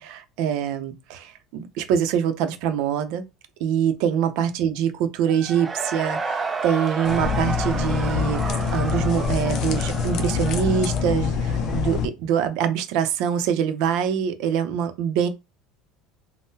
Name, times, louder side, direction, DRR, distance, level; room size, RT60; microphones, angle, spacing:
voice 1, 0.0-3.2 3.6-15.3, right 8 dB, 70° right, 0.5 m, -24 dB
Cheering / Crowd, 5.3-12.0, right 4 dB, 15° right, 0.4 m, -32 dB
sound 1, 7.1-12.1, left 6 dB, 50° left, 0.4 m, -25 dB
3.6 x 2.1 x 2.7 m
cardioid pair, 140°, 0 cm